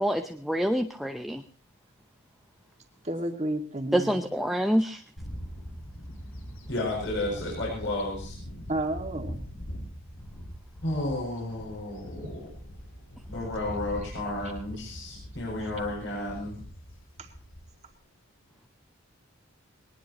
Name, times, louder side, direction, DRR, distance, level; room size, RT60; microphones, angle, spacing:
voice 1, 0.0-1.4 3.9-5.0, equal, ahead, 6 dB, 0.7 m, -26 dB
voice 2, 3.0-4.3 8.7-9.4 12.2-12.4 17.2-17.3, right 1 dB, 30° right, 4 dB, 2.2 m, -32 dB
Bird / Wind, 5.2-17.9, equal, 80° left, 5.2 m, -42 dB
voice 3, 6.7-8.4 10.8-12.5 13.3-16.6, left 2 dB, 55° left, -3 dB, 7.3 m, -32 dB
21.5 x 19.5 x 3.0 m, 0.37 s
head